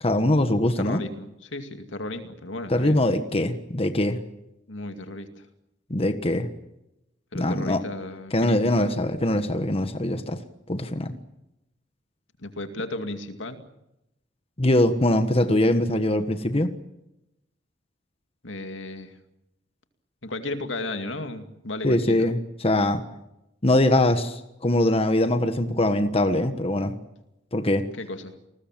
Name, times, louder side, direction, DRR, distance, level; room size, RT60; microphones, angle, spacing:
voice 1, 0.0-1.0 2.7-4.2 5.9-6.5 7.3-7.8 8.3-10.4 10.7-11.1 14.6-16.7 21.8-22.4 22.6-23.0 23.6-26.9 27.5-27.8, left 1 dB, 30° left, 9 dB, 1.4 m, -22 dB
voice 2, 0.8-3.0 4.7-5.4 7.3-9.1 12.4-13.6 18.4-19.2 20.2-22.3 28.0-28.3, left 2 dB, 80° left, 7 dB, 2.4 m, -34 dB
29.5 x 20.5 x 7.5 m, 0.90 s
head